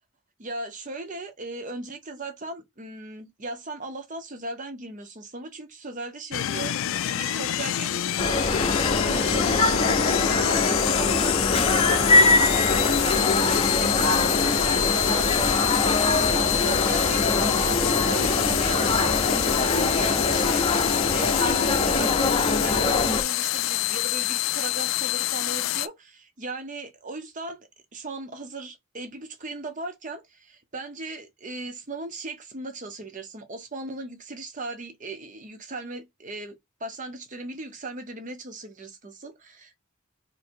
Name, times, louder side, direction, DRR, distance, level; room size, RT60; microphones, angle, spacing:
voice 1, 0.4-27.6 27.9-39.7, right 2 dB, 35° right, 0.8 m, -38 dB
sound 1, 6.3-25.9, left 14 dB, 65° left, 0.3 m, -27 dB
sound 2, 8.2-23.2, left 3 dB, 25° left, 0.6 m, -23 dB
3.1 x 2.7 x 4.4 m
head